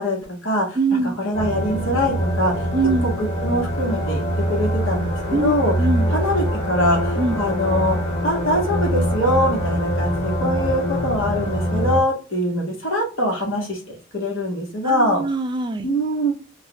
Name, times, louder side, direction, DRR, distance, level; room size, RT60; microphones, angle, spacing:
voice 1, 0.0-2.7 3.0-4.2 4.5-5.7 6.1-8.0 8.2-15.2 15.8-16.3, equal, 80° left, -1 dB, 1.6 m, -23 dB
voice 2, 0.8-1.2 2.7-3.1 5.3-5.5 5.8-6.1 7.2-7.4 14.8-15.9, right 3 dB, 25° right, 8 dB, 0.3 m, -22 dB
sound 1, 1.3-12.0, equal, 30° left, 1.2 m, -24 dB
3.8 x 2.5 x 3.0 m, 0.35 s
head